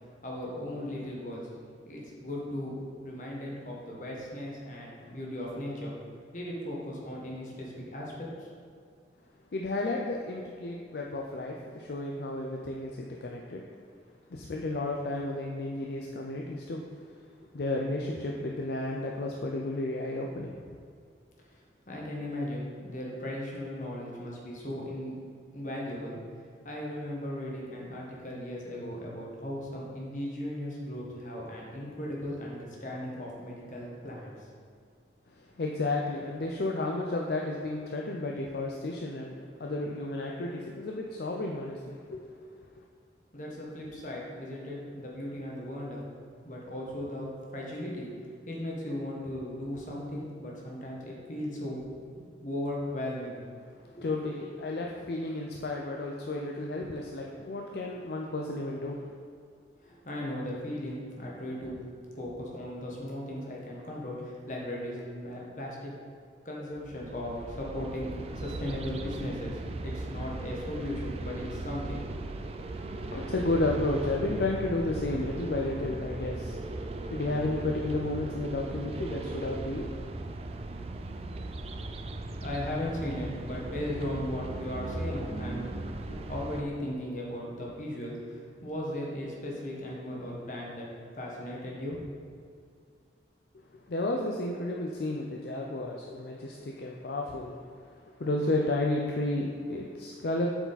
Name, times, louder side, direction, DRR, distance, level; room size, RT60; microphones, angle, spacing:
voice 1, 0.2-1.5 1.9-2.7 3.0-5.9 6.3-8.1 8.4-8.5 21.9-25.2 25.5-26.2 26.6-34.3 43.3-46.0 46.4-48.1 48.5-51.8 52.4-53.4 53.8-54.1 59.8-61.8 62.1-65.9 66.4-72.0 82.2-85.7 86.0-90.8 91.1-92.0, left 1 dB, 45° left, -3 dB, 1.3 m, -37 dB
voice 2, 9.5-13.6 14.3-16.8 17.5-20.8 35.6-42.3 54.0-59.1 73.1-76.6 77.1-79.9 93.9-97.6 98.2-100.5, left 2 dB, 60° left, 0 dB, 0.5 m, -32 dB
sound 1, 66.7-86.6, right 2 dB, 35° right, 0.3 m, -38 dB
7.6 x 4.8 x 4.0 m, 2.2 s
head